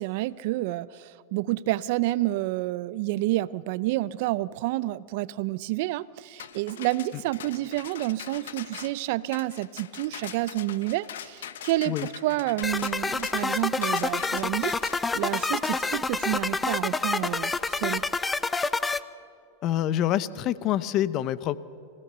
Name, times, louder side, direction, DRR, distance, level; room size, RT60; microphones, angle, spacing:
voice 1, 0.0-18.0, right 17 dB, 60° right, 19 dB, 0.6 m, -29 dB
sound 1, 6.4-16.8, left 10 dB, 80° left, 1.2 m, -42 dB
sound 2, 12.6-19.0, left 3 dB, 15° left, 0.7 m, -28 dB
voice 2, 19.6-21.6, left 12 dB, 45° left, 17 dB, 0.8 m, -26 dB
27.0 x 16.5 x 6.8 m, 2.5 s
hypercardioid pair, 115°, 0 cm